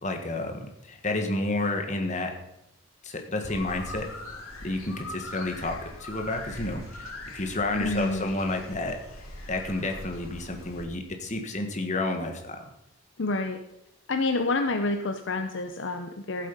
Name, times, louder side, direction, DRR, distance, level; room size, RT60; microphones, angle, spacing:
voice 1, 0.0-2.3 3.0-4.1 4.6-9.0 9.5-12.6, left 2 dB, 35° left, 4 dB, 1.5 m, -30 dB
sound 1, 3.4-10.8, left 1 dB, 90° left, 2.8 m, -41 dB
voice 2, 7.8-8.3 13.2-13.6 14.1-16.5, left 2 dB, 60° left, 6 dB, 0.7 m, -28 dB
14.0 x 7.6 x 5.4 m, 0.83 s
head